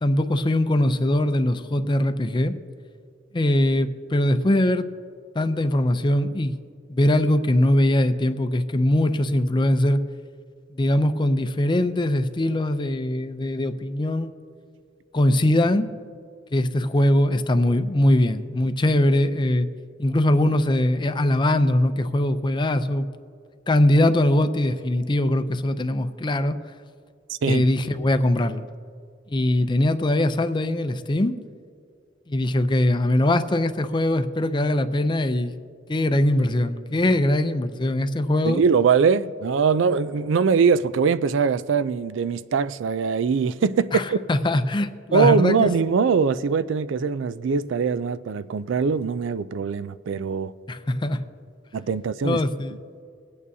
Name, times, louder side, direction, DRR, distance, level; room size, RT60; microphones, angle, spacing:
voice 1, 0.0-2.5 3.3-4.9 5.3-6.5 6.9-10.0 10.7-14.3 15.1-15.9 16.5-19.7 20.0-23.1 23.7-26.6 27.5-28.6 29.3-31.4 32.3-35.6 35.9-38.6 43.9-45.7 50.7-51.2 52.2-52.8, left 1 dB, 25° left, 0.5 m, -21 dB
voice 2, 27.3-27.6 38.4-44.2 45.1-50.5 51.7-52.4, right 5 dB, 75° right, 0.4 m, -22 dB
23.0 x 8.7 x 2.7 m
head